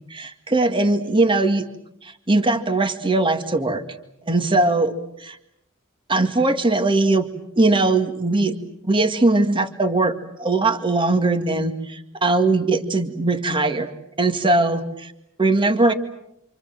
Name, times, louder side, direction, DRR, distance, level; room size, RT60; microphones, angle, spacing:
voice 1, 0.1-1.7 2.0-3.8 4.3-4.9 5.2-5.4 6.1-7.3 7.6-8.5 8.8-13.9 14.2-14.9 15.4-15.9, right 2 dB, 25° right, 7 dB, 2.0 m, -20 dB
28.0 x 26.5 x 7.8 m, 0.81 s
head